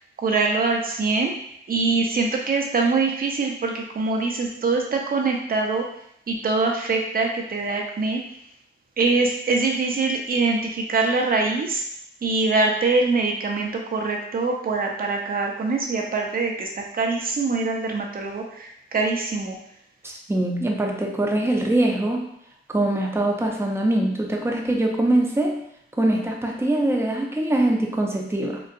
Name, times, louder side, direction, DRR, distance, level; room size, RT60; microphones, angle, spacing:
voice 1, 0.2-1.3 1.7-5.8 6.3-8.2 9.0-11.8 12.2-19.6, right 3 dB, 45° right, 1 dB, 0.7 m, -23 dB
voice 2, 20.0-22.3 22.7-25.6 26.0-28.6, right 1 dB, 10° right, 0 dB, 0.6 m, -23 dB
3.8 x 2.2 x 2.6 m, 0.73 s
cardioid pair, 80°, 21 cm